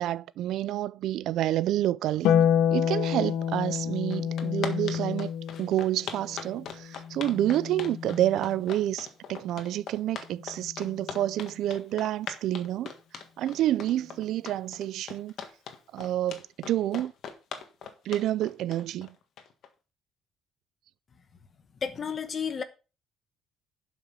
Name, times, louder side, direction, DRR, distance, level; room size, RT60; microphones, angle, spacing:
voice 1, 0.0-2.3 2.7-5.3 5.6-15.3 15.9-17.1 18.0-19.1, right 13 dB, 60° right, 0.4 m, -29 dB
Harp, 2.2-8.8 10.4-11.4, left 9 dB, 80° left, 0.9 m, -29 dB
sound 1, 3.7-3.8 4.1-19.7, left 7 dB, 50° left, 1.6 m, -40 dB
voice 2, 21.8-22.6, left 6 dB, 30° left, 1.1 m, -31 dB
11.5 x 5.9 x 5.4 m
cardioid pair, 170°, 0 cm